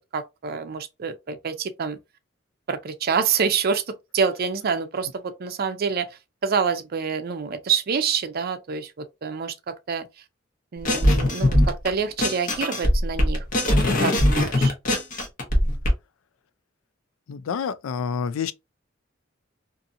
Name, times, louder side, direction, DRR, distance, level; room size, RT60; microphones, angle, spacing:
voice 1, 0.1-2.0 2.7-3.8 4.1-6.1 6.4-10.1 10.7-13.7 14.0-14.7, right 6 dB, 50° right, 0.5 m, -27 dB
sound 1, 10.9-11.9 12.2-15.9, left 1 dB, 45° left, 0.9 m, -20 dB
voice 2, 17.3-18.5, left 6 dB, 85° left, 0.3 m, -28 dB
2.7 x 2.6 x 2.5 m
head